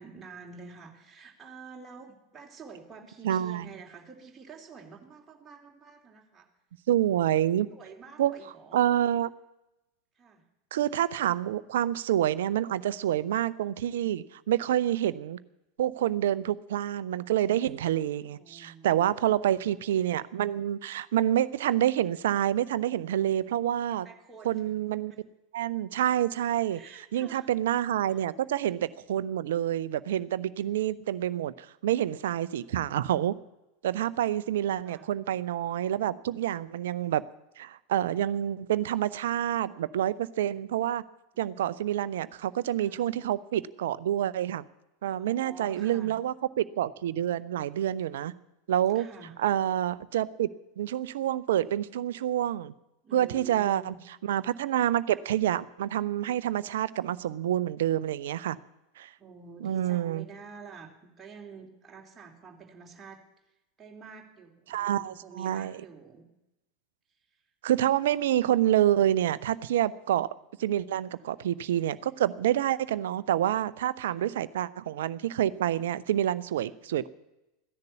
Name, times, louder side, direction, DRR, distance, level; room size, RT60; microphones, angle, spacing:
voice 1, 0.0-6.5 7.1-7.3 7.7-8.8 10.1-10.4 18.3-19.7 23.9-25.2 26.7-27.5 28.1-28.3 34.8-35.0 42.8-43.0 45.2-46.1 48.9-49.3 53.0-54.0 59.2-63.2 63.8-66.2 71.1-71.2 74.1-74.3 76.7-76.8, right 5 dB, 20° right, 0 dB, 3.0 m, -49 dB
voice 2, 3.2-3.7 6.9-7.7 8.2-8.3 8.7-9.3 10.7-15.4 15.8-24.1 24.4-25.1 25.5-26.8 27.1-33.4 33.8-37.2 37.6-41.0 41.4-44.6 45.0-48.3 48.7-49.1 49.4-50.5 50.8-52.7 53.1-53.9 54.2-58.6 59.0-59.1 59.6-60.2 64.7-65.7 67.6-70.3 70.6-77.1, right 11 dB, 65° right, 17 dB, 0.6 m, -27 dB
15.0 x 10.5 x 8.3 m, 0.92 s
figure-of-eight pair, 85°, 0 cm